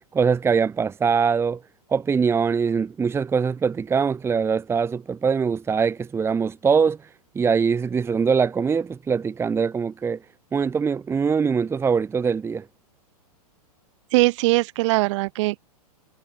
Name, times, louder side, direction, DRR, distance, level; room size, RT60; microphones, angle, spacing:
voice 1, 0.1-1.6 1.9-7.0 7.3-10.2 10.5-12.7, right 6 dB, 10° right, 1.2 m, -22 dB
voice 2, 14.1-15.6, right 21 dB, 50° right, 2.2 m, -21 dB
hypercardioid pair, 125°, 20 cm